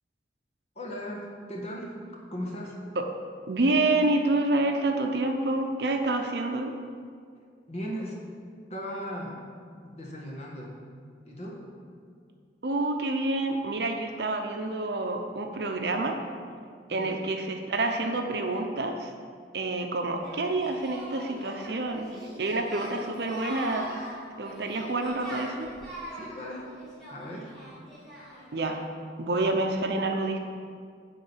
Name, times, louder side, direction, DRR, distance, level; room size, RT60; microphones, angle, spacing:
voice 1, 0.7-1.9 2.3-2.8 7.7-8.2 8.7-9.4 9.8-10.8 11.2-11.6 17.0-17.3 26.1-26.7 27.1-27.6, equal, 35° left, -2 dB, 1.5 m, -37 dB
voice 2, 3.5-6.7 12.6-16.2 16.9-19.1 19.5-24.0 24.4-25.7 28.5-28.8 29.2-30.4, right 2 dB, 65° right, 4 dB, 0.7 m, -28 dB
Singing, 20.2-28.6, equal, ahead, 2.3 m, -42 dB
9.6 x 3.8 x 7.3 m, 2.1 s
head